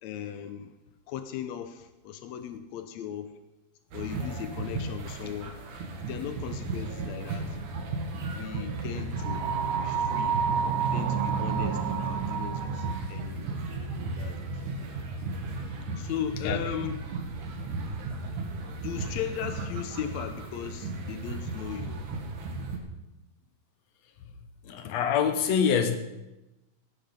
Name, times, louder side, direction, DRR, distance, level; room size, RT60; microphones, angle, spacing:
voice 1, 0.0-0.7 1.1-3.3 3.9-5.6 6.1-7.6 8.4-9.5 9.8-10.4 10.9-13.6 14.2-14.5 16.0-17.0 18.8-22.0, left 9 dB, 80° left, 8 dB, 1.6 m, -37 dB
sound 1, 3.9-22.8, right 2 dB, 65° right, 3.0 m, -35 dB
sound 2, 9.2-13.1, right 7 dB, 80° right, 2.6 m, -29 dB
voice 2, 24.6-26.0, left 7 dB, 65° left, 8 dB, 1.9 m, -25 dB
16.5 x 10.5 x 5.2 m, 0.99 s
omnidirectional pair, 4.1 m